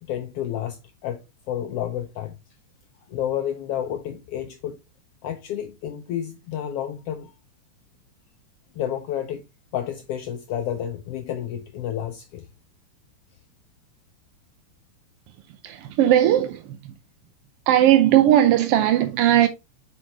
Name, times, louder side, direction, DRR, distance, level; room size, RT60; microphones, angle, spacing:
voice 1, 0.0-1.2 1.5-2.3 3.1-4.8 5.2-7.3 8.8-9.4 9.7-12.5, left 10 dB, 80° left, 1.3 m, -30 dB
voice 2, 15.6-16.8 17.7-19.5, right 12 dB, 80° right, 1.3 m, -18 dB
6.2 x 5.3 x 2.9 m
omnidirectional pair, 3.3 m